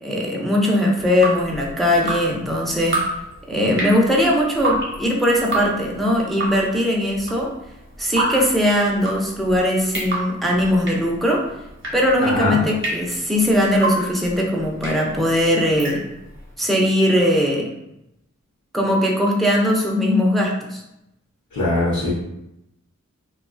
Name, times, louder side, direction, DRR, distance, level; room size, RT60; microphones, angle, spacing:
voice 1, 0.0-3.0 3.5-7.5 8.0-11.5 11.9-16.0 16.6-17.7 18.7-20.8, left 1 dB, ahead, -2 dB, 0.4 m, -20 dB
Drip, 1.0-16.4, right 2 dB, 40° right, 0.8 m, -29 dB
voice 2, 12.2-12.6 21.5-22.1, left 2 dB, 75° left, -8 dB, 0.8 m, -21 dB
2.3 x 2.2 x 2.4 m, 0.85 s
wide cardioid pair, 80°, 31 cm